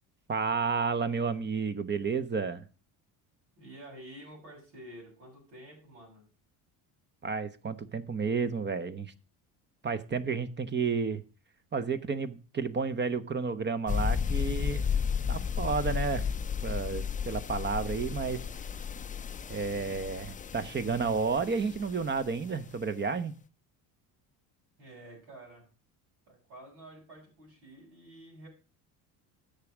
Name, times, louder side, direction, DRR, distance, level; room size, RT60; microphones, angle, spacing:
voice 1, 0.3-2.7 7.2-9.1 9.8-11.2 11.7-14.9 15.3-16.3 16.6-18.4 19.5-23.3, right 5 dB, 25° right, 13 dB, 0.9 m, -31 dB
voice 2, 3.6-6.3 24.8-25.7 26.3-28.5, right 1 dB, 85° right, -3 dB, 6.6 m, -50 dB
sound 1, 13.9-22.3, left 7 dB, 20° left, 0.5 m, -33 dB
8.0 x 6.7 x 6.1 m, 0.35 s
supercardioid pair, 85°, 41 cm